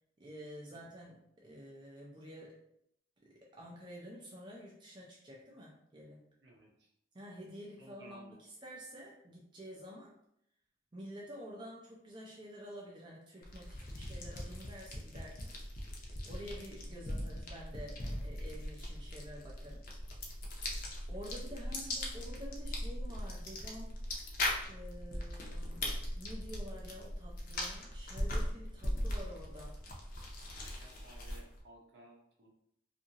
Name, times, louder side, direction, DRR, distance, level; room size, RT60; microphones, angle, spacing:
voice 1, 0.2-2.6 3.2-6.2 7.1-10.1 10.9-15.5 16.3-19.8 21.1-24.0 24.7-29.7, equal, 25° right, -3 dB, 0.5 m, -49 dB
voice 2, 6.4-6.9 7.8-8.4 21.5-21.8 22.3-22.4 30.5-32.5, right 1 dB, 65° right, -1 dB, 0.7 m, -58 dB
sound 1, 13.4-31.6, left 1 dB, 50° left, 0.6 m, -40 dB
2.7 x 2.6 x 2.7 m, 0.74 s
head